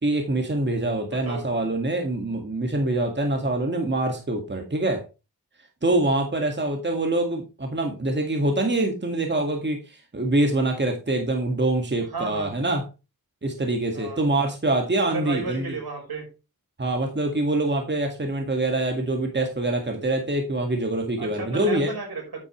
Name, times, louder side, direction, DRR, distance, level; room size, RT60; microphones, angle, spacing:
voice 1, 0.0-5.0 5.8-12.8 13.4-15.8 16.8-21.9, right 2 dB, 30° right, 3 dB, 2.0 m, -25 dB
voice 2, 1.1-1.7 12.1-12.5 13.9-14.3 15.1-16.3 21.2-22.4, right 4 dB, 70° right, 1 dB, 5.1 m, -33 dB
9.6 x 8.2 x 3.2 m, 0.28 s
wide cardioid pair, 80°, 38 cm